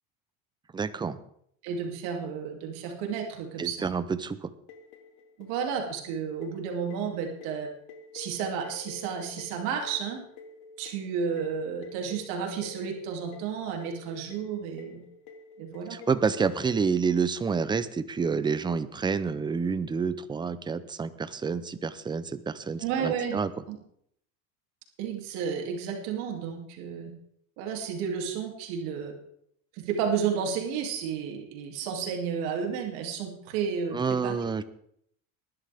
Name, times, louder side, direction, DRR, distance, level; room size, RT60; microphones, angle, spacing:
voice 1, 0.7-1.2 3.6-4.5 15.9-23.5 33.9-34.6, right 5 dB, 10° right, 13 dB, 0.5 m, -28 dB
voice 2, 1.6-3.9 5.4-7.7 8.1-10.2 10.8-15.0 15.6-16.0 22.8-23.4 23.7-23.8 25.0-27.1 27.6-29.1 29.7-34.4, right 7 dB, 60° right, 2 dB, 2.9 m, -32 dB
sound 1, 4.7-17.0, left 5 dB, 55° left, 2.1 m, -49 dB
19.5 x 11.5 x 3.5 m, 0.69 s
supercardioid pair, 135°, 42 cm